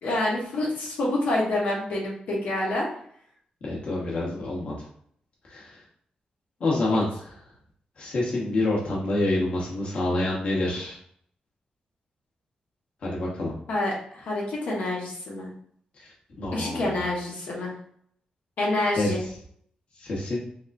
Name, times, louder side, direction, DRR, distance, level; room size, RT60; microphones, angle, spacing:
voice 1, 0.0-2.9 13.7-15.5 16.5-17.7 18.6-19.2, left 1 dB, 85° left, -4 dB, 1.2 m, -27 dB
voice 2, 3.6-4.9 5.4-5.8 6.6-7.4 8.0-11.0 13.0-13.5 15.9-17.0 18.9-19.3 20.0-20.4, left 2 dB, 50° left, -5 dB, 1.0 m, -27 dB
3.5 x 3.2 x 2.6 m, 0.64 s
wide cardioid pair, 170°, 3 cm